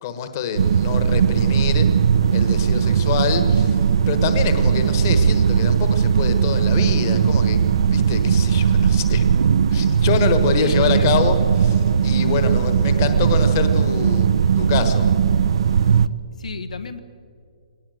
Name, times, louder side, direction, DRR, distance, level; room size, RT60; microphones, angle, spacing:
voice 1, 0.0-1.9 2.3-3.8 4.1-9.2 9.7-14.3 14.6-15.0, left 6 dB, 25° left, 8 dB, 1.3 m, -25 dB
sound 1, 0.6-16.1, right 7 dB, 50° right, 0.5 m, -18 dB
voice 2, 4.4-4.7 10.6-11.1 16.4-17.0, left 5 dB, 85° left, 9 dB, 1.5 m, -34 dB
20.5 x 18.5 x 7.9 m, 2.3 s
hypercardioid pair, 175°, 4 cm